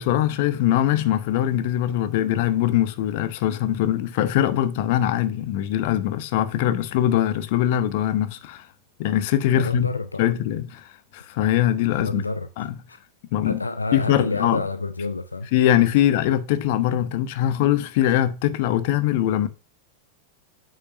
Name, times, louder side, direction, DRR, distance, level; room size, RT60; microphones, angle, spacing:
voice 1, 0.0-8.7 9.0-9.9 10.2-12.2 12.6-12.7 13.3-13.6 13.9-14.6 15.5-19.5, left 12 dB, 50° left, 0.9 m, -22 dB
voice 2, 9.5-10.3 11.9-13.0 13.4-15.5, left 3 dB, 80° left, 0.5 m, -28 dB
8.3 x 7.7 x 2.6 m
figure-of-eight pair, 90°, 0 cm